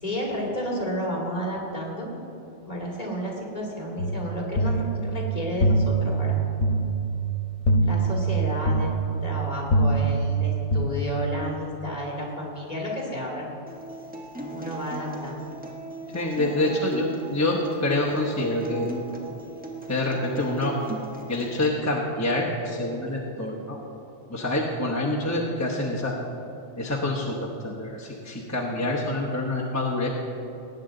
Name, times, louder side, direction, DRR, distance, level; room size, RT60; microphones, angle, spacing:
voice 1, 0.0-2.1 2.6-6.4 7.8-8.9 9.2-13.4 14.5-15.4, equal, 35° left, -2 dB, 2.4 m, -31 dB
sound 1, 4.0-10.8, right 2 dB, 85° left, 1.1 m, -24 dB
Acoustic guitar, 13.7-21.7, right 2 dB, 10° right, 1.2 m, -38 dB
voice 2, 16.1-18.9 19.9-20.8 21.3-23.8 24.3-26.1 26.8-30.1, left 1 dB, 15° left, -3 dB, 1.0 m, -26 dB
18.5 x 8.8 x 3.9 m, 2.9 s
omnidirectional pair, 1.2 m